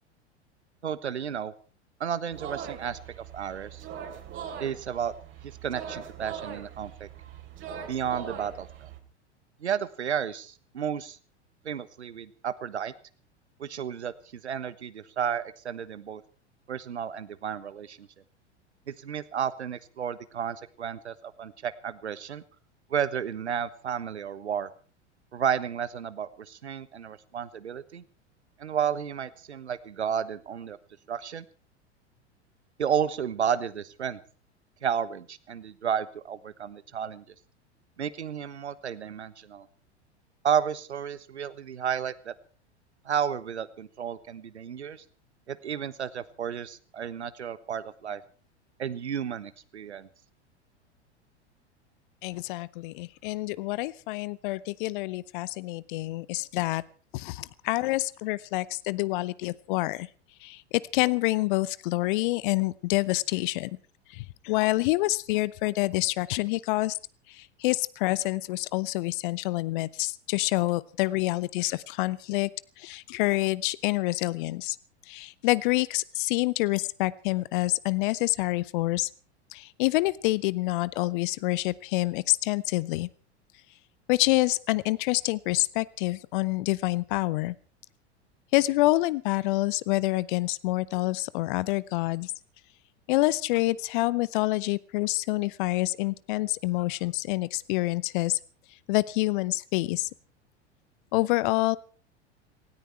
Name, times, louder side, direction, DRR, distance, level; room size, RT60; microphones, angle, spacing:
voice 1, 0.8-1.5 2.0-3.8 4.6-5.1 5.4-7.1 7.9-8.9 9.6-11.2 11.6-12.9 13.6-16.2 16.7-18.1 18.9-22.4 22.9-24.7 25.3-28.0 28.6-30.8 31.1-31.4 32.8-34.2 34.8-37.2 38.0-39.7 40.4-42.3 43.0-45.0 45.5-48.2 48.8-50.1, right 8 dB, 75° right, 16 dB, 1.3 m, -32 dB
sound 1, 2.3-9.0, right 8 dB, 35° right, 3.5 m, -41 dB
voice 2, 52.2-56.8 57.1-60.1 60.4-63.8 64.1-67.0 67.3-72.5 72.8-74.8 75.1-79.1 79.5-83.1 84.1-87.5 88.5-92.3 93.1-98.4 98.9-100.1 101.1-101.8, left 20 dB, 45° left, 21 dB, 0.8 m, -27 dB
18.5 x 17.5 x 4.4 m, 0.40 s
figure-of-eight pair, 85°, 34 cm